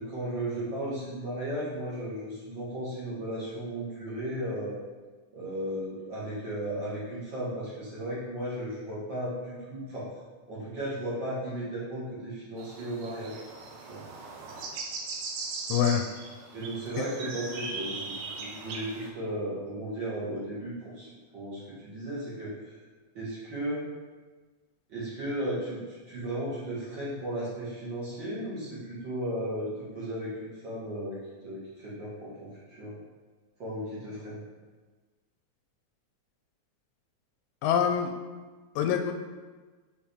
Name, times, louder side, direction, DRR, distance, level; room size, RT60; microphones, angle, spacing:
voice 1, 0.0-4.8 5.3-10.1 10.5-13.4 13.9-14.0 16.5-22.5 23.1-23.9 24.9-31.2 31.4-33.0 33.6-34.4, right 1 dB, 45° right, -9 dB, 1.9 m, -35 dB
sound 1, 12.6-19.1, right 4 dB, 80° right, 2.2 m, -39 dB
voice 2, 15.7-16.0 37.6-38.1 38.8-39.1, left 8 dB, 80° left, 5 dB, 1.9 m, -25 dB
7.4 x 4.6 x 3.5 m, 1.3 s
omnidirectional pair, 3.5 m